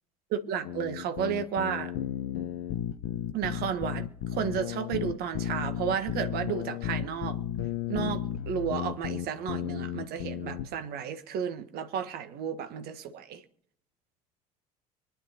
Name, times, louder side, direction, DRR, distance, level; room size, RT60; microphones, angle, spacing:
voice 1, 0.3-1.9 3.3-7.4 7.9-13.4, right 8 dB, 55° right, 1.4 m, -32 dB
sound 1, 0.6-10.6, left 11 dB, 65° left, 0.9 m, -34 dB
25.0 x 10.5 x 2.9 m
figure-of-eight pair, 60°, 20 cm